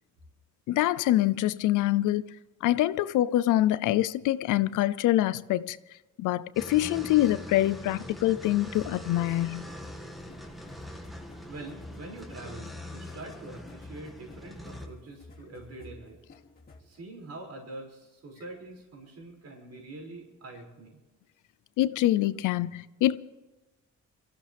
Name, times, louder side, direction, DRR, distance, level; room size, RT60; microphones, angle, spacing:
voice 1, 0.7-2.2 2.6-5.8 6.2-9.6 21.8-23.2, left 14 dB, 85° left, 0.7 m, -25 dB
sound 1, 6.5-14.9, left 1 dB, ahead, 2.0 m, -43 dB
sound 2, 8.8-17.0, left 2 dB, 30° left, 3.2 m, -50 dB
voice 2, 11.5-16.2 16.8-21.0, right 2 dB, 55° right, 6.3 m, -44 dB
23.0 x 15.0 x 3.5 m
cardioid pair, 90°, 30 cm